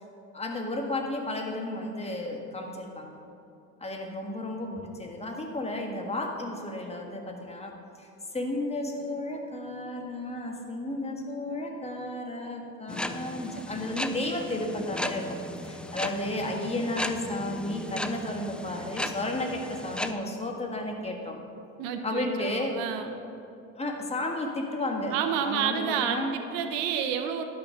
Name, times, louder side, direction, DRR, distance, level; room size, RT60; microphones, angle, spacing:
voice 1, 0.3-3.1 3.8-7.7 8.0-8.1 8.3-21.4 22.0-22.8 23.8-25.2 25.4-26.3, left 1 dB, 20° left, 1 dB, 1.7 m, -33 dB
sound 1, 12.9-20.1, left 1 dB, 5° left, 0.4 m, -36 dB
voice 2, 21.8-23.2 25.1-27.4, right 8 dB, 80° right, 7 dB, 0.9 m, -30 dB
11.5 x 6.3 x 5.8 m, 2.7 s
supercardioid pair, 90°, 34 cm